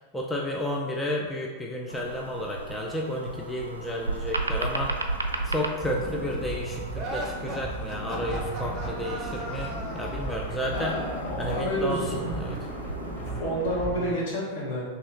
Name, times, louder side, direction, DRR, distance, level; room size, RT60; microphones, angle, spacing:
voice 1, 0.1-5.0 5.4-11.0 11.4-12.6, left 1 dB, 10° left, -2 dB, 0.4 m, -32 dB
sound 1, 1.9-13.3, right 3 dB, 80° right, 0.3 m, -36 dB
sound 2, 5.8-14.1, right 2 dB, 30° left, 1.4 m, -36 dB
sound 3, 6.9-10.5, right 1 dB, 30° right, 0.7 m, -37 dB
voice 2, 10.7-12.3 13.4-14.9, equal, 60° left, -5 dB, 1.2 m, -29 dB
3.1 x 2.9 x 4.0 m, 1.4 s
figure-of-eight pair, 90°, 0 cm